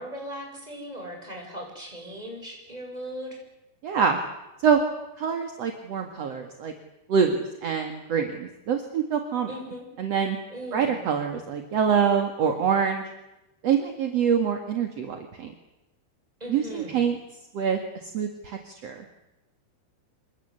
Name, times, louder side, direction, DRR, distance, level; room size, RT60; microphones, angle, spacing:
voice 1, 0.0-3.4 9.5-9.9 10.5-11.0 16.4-17.1, equal, 10° right, 1 dB, 7.4 m, -38 dB
voice 2, 3.8-4.2 4.6-4.8 5.2-6.7 7.1-9.5 10.0-10.4 10.7-13.0 13.6-15.5 16.5-17.2 17.5-19.0, right 7 dB, 50° right, 5 dB, 2.3 m, -25 dB
27.5 x 23.5 x 8.2 m, 0.96 s
omnidirectional pair, 5.2 m